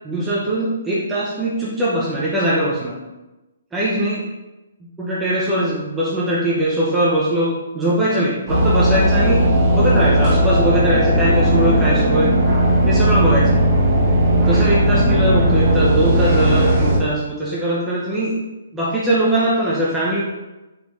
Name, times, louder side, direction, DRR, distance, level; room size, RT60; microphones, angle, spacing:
voice 1, 0.0-3.0 3.7-4.2 4.8-9.4 9.7-12.3 12.8-13.6 14.4-18.3 18.7-20.2, right 1 dB, 10° right, -7 dB, 0.6 m, -21 dB
sound 1, 8.5-17.0, right 1 dB, 25° right, 1.0 m, -16 dB
3.4 x 2.4 x 3.0 m, 1.0 s
hypercardioid pair, 140°, 0 cm